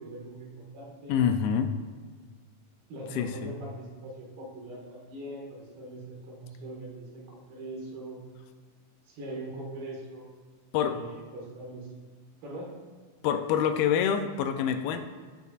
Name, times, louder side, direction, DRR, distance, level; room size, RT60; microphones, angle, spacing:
voice 1, 0.0-1.2 2.9-8.2 9.1-10.3 10.8-11.9 12.4-12.8, right 2 dB, 80° right, -3 dB, 3.5 m, -41 dB
voice 2, 1.1-1.7 3.1-3.5 10.7-11.0 13.2-15.0, left 8 dB, 90° left, 8 dB, 2.5 m, -26 dB
15.5 x 5.4 x 2.4 m, 1.5 s
omnidirectional pair, 4.3 m